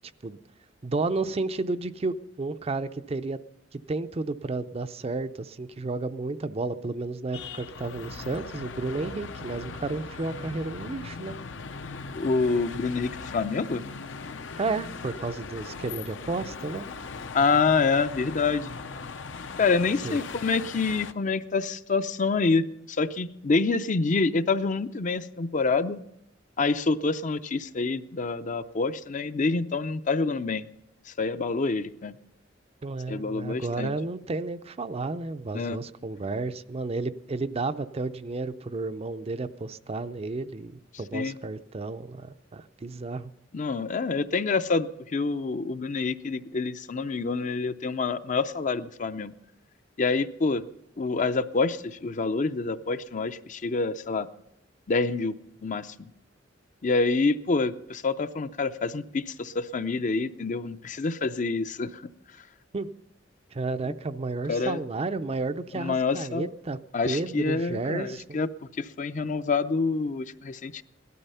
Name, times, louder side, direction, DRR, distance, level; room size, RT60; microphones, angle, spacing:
voice 1, 0.8-3.4 3.7-11.4 14.6-16.9 20.0-20.2 32.8-43.3 62.7-62.9 63.5-68.4, right 3 dB, 30° right, 11 dB, 0.5 m, -32 dB
sound 1, 7.3-21.1, left 4 dB, 75° left, 0.7 m, -39 dB
voice 2, 12.1-13.8 17.3-18.8 19.6-26.0 26.6-30.6 31.1-32.2 33.1-33.9 35.5-35.8 41.1-41.4 43.5-49.3 50.0-50.6 51.0-54.3 54.9-55.4 55.6-56.1 56.8-62.1 64.5-64.8 65.7-66.5 66.9-68.5 68.8-70.8, left 4 dB, 40° left, 11 dB, 0.5 m, -27 dB
17.0 x 12.5 x 5.6 m, 0.81 s
head